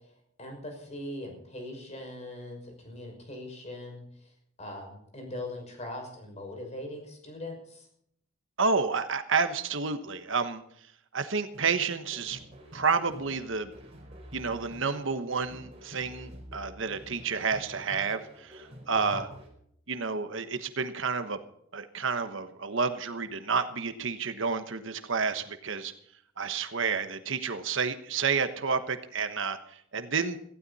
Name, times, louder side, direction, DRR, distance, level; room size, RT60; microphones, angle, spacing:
voice 1, 0.4-4.3 4.6-7.9 18.9-19.2, left 1 dB, 30° left, 2 dB, 6.0 m, -41 dB
voice 2, 8.6-10.6 11.1-12.4 12.7-13.7 14.3-19.3 19.9-21.4 21.7-25.9 26.4-30.4, right 5 dB, 60° right, 9 dB, 1.2 m, -30 dB
sound 1, 11.5-19.5, equal, 30° right, 4.7 m, -48 dB
18.0 x 15.5 x 4.2 m, 0.69 s
head